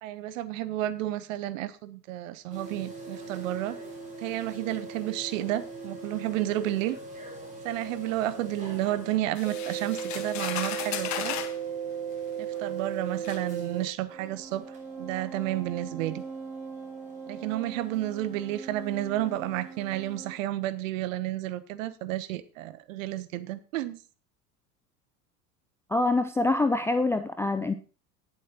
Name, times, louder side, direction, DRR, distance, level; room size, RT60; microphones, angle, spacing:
voice 1, 0.0-3.8 4.2-7.0 7.6-11.4 12.4-16.2 17.3-24.0, right 14 dB, 55° right, 15 dB, 1.1 m, -31 dB
sound 1, 2.5-9.2 9.4-13.8 14.1-20.3, right 6 dB, 15° right, 6.1 m, -38 dB
sound 2, 9.3-11.6 12.5-12.6 13.2-13.4, left 11 dB, 35° left, 1.5 m, -35 dB
voice 2, 25.9-27.7, left 2 dB, 5° left, 8 dB, 0.4 m, -25 dB
18.0 x 7.6 x 3.0 m, 0.36 s
figure-of-eight pair, 75°, 47 cm